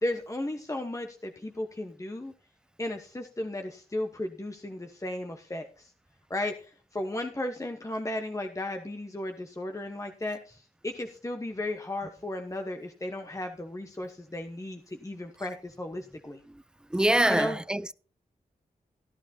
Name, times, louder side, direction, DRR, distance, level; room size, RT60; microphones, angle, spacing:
voice 1, 0.0-2.3 2.8-5.9 6.3-16.4 17.3-17.6, left 1 dB, 20° left, 1.1 m, -35 dB
voice 2, 16.9-17.9, right 1 dB, 5° right, 0.5 m, -25 dB
13.5 x 11.0 x 2.8 m
cardioid pair, 50°, 16 cm